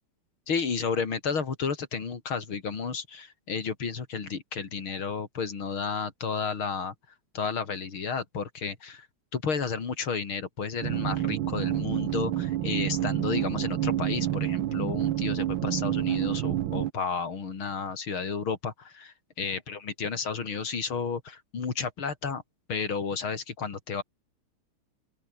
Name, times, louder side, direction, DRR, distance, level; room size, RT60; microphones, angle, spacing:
voice 1, 0.5-6.9 7.3-9.1 9.3-22.4 22.7-24.0, left 5 dB, 70° left, 3.8 m, -32 dB
sound 1, 10.8-16.9, right 13 dB, 70° right, 1.6 m, -28 dB
open air
omnidirectional pair, 2.4 m